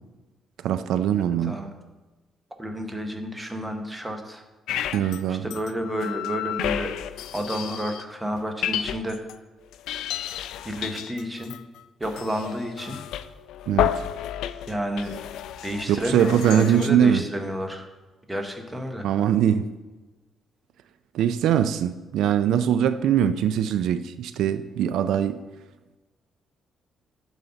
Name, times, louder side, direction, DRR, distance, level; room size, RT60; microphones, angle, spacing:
voice 1, 0.6-1.6 4.9-5.5 13.7-14.0 15.9-17.2 19.0-19.7 21.1-25.4, right 9 dB, 75° right, 0.3 m, -22 dB
voice 2, 2.6-4.4 5.3-6.9 7.3-9.2 10.6-11.5 12.0-13.0 14.7-15.1 15.6-17.8 18.3-19.1, equal, 10° right, 0.9 m, -30 dB
sound 1, 4.7-5.2 5.5-8.0 8.4-9.4 9.7-16.9, left 11 dB, 85° left, 0.3 m, -31 dB
9.0 x 4.1 x 6.8 m
cardioid pair, 165°, 0 cm